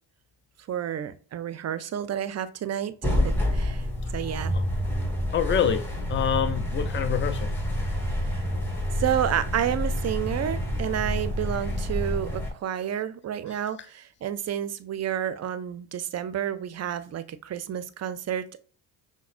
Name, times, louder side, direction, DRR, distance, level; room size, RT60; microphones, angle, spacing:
voice 1, 0.7-2.9 3.2-3.8 4.1-4.6 8.9-18.6, right 10 dB, 35° right, 0.5 m, -30 dB
sound 1, 3.0-12.5, equal, 5° left, 1.5 m, -28 dB
voice 2, 5.3-7.5, left 8 dB, 25° left, 0.5 m, -26 dB
5.8 x 2.2 x 2.5 m
supercardioid pair, 65°, 46 cm